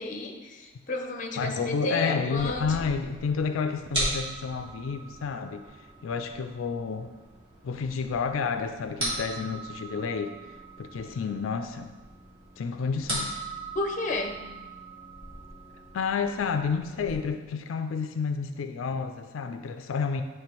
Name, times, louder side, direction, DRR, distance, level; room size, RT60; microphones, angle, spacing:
voice 1, 0.0-2.8 13.7-14.5, left 2 dB, 40° left, 3 dB, 0.7 m, -32 dB
voice 2, 1.4-5.6 6.0-7.1 7.6-10.3 10.8-11.9 12.6-13.4 15.9-20.2, left 5 dB, 90° left, 7 dB, 0.4 m, -30 dB
sound 1, 2.4-17.1, right 1 dB, 25° right, 2.1 m, -38 dB
8.5 x 3.2 x 4.4 m, 1.2 s
head